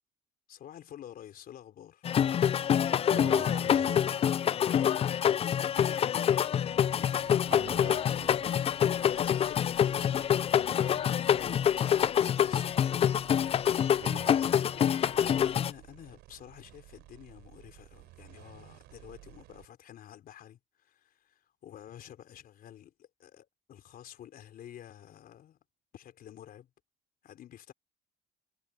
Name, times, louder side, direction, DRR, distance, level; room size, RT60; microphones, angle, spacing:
voice 1, 0.5-2.0 4.5-6.7 9.1-13.0 15.1-25.6 25.9-26.7 27.2-27.7, left 11 dB, 60° left, 4.0 m, -50 dB
sound 1, 2.0-15.7, left 9 dB, 35° left, 0.4 m, -26 dB
voice 2, 3.1-4.1 7.4-8.6 14.0-14.4, right 6 dB, 40° right, 4.8 m, -44 dB
sound 2, 6.6-19.7, right 18 dB, 90° right, 4.4 m, -54 dB
cardioid pair, 110°, 17 cm